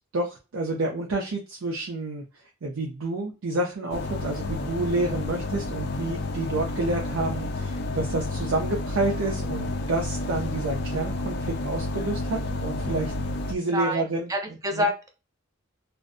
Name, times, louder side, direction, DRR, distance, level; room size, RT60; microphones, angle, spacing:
voice 1, 0.1-2.2 2.6-13.1 13.5-14.9, right 2 dB, 80° right, 0 dB, 0.5 m, -29 dB
sound 1, 3.9-13.5, left 2 dB, 55° left, 0.3 m, -30 dB
voice 2, 13.7-15.1, equal, 15° right, 4 dB, 0.4 m, -28 dB
2.5 x 2.1 x 2.5 m, 0.31 s
head